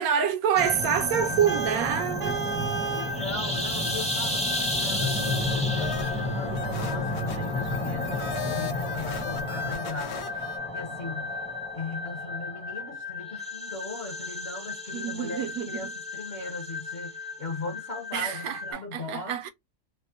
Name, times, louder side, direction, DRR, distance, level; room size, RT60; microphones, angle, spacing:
voice 1, 0.0-2.4 14.9-15.9 18.1-18.6 18.9-19.5, right 8 dB, 70° right, 1.0 m, -26 dB
sound 1, 0.6-18.7, left 1 dB, 5° left, 0.5 m, -31 dB
Vehicle horn car horn honking, 1.5-3.2, right 6 dB, 50° right, 0.5 m, -32 dB
voice 2, 2.9-11.4 11.7-19.5, left 3 dB, 50° left, 0.8 m, -38 dB
sound 2, 4.0-5.0 5.8-10.6, left 6 dB, 80° left, 1.3 m, -39 dB
3.3 x 2.1 x 2.5 m
omnidirectional pair, 1.7 m